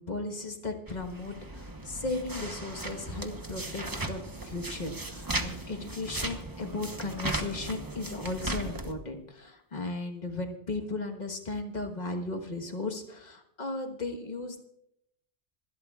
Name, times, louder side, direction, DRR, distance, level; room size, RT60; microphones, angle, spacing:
voice 1, 0.0-14.6, left 2 dB, 35° left, 4 dB, 1.5 m, -36 dB
sound 1, 0.9-8.9, right 2 dB, 20° right, 1.0 m, -37 dB
27.0 x 12.0 x 2.4 m, 0.76 s
omnidirectional pair, 1.2 m